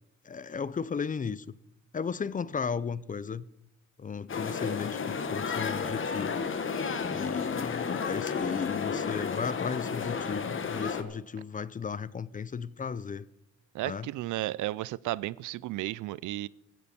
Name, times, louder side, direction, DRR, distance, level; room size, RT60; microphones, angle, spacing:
voice 1, 0.2-1.5 1.9-3.4 4.0-6.4 7.1-13.3 13.8-14.1, left 6 dB, 25° left, 0.5 m, -35 dB
sound 1, 4.3-11.0, left 5 dB, 40° left, 1.5 m, -32 dB
voice 2, 13.7-16.5, right 16 dB, 80° right, 0.5 m, -33 dB
16.5 x 14.0 x 4.3 m
cardioid pair, 90°, 30 cm